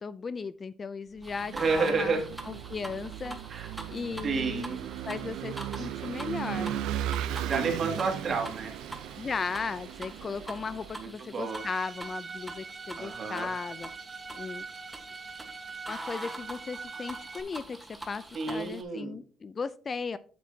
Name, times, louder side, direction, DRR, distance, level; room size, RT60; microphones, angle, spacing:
voice 1, 0.0-3.4 3.9-4.7 5.1-6.7 9.2-13.9 14.3-14.6 15.9-17.8 18.1-20.2, left 5 dB, 30° left, 16 dB, 0.4 m, -36 dB
sound 1, 1.2-18.8, right 1 dB, 10° right, 1.2 m, -45 dB
Vehicle / Engine, 1.2-11.0, right 11 dB, 80° right, 0.5 m, -37 dB
voice 2, 1.5-2.3 3.5-3.7 4.2-4.8 5.8-5.9 7.5-8.7 11.0-11.6 13.0-13.5 18.3-19.1, right 4 dB, 45° right, 3 dB, 2.1 m, -30 dB
Bowed string instrument, 11.4-17.4, right 4 dB, 25° right, 0.7 m, -43 dB
8.8 x 7.3 x 2.8 m, 0.41 s
cardioid pair, 110°, 0 cm